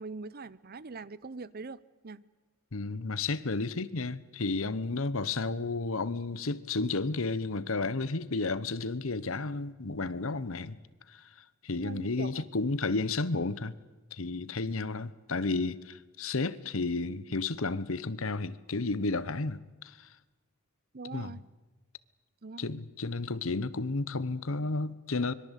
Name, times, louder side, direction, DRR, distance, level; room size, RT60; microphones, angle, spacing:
voice 1, 0.0-2.2 11.8-12.4 20.9-21.4 22.4-22.8, right 3 dB, 45° right, 0.7 m, -42 dB
voice 2, 2.7-10.8 11.1-11.3 11.6-13.8 14.1-20.1 21.1-21.4 22.6-25.3, left 3 dB, 70° left, 1.0 m, -32 dB
25.0 x 22.5 x 8.3 m
head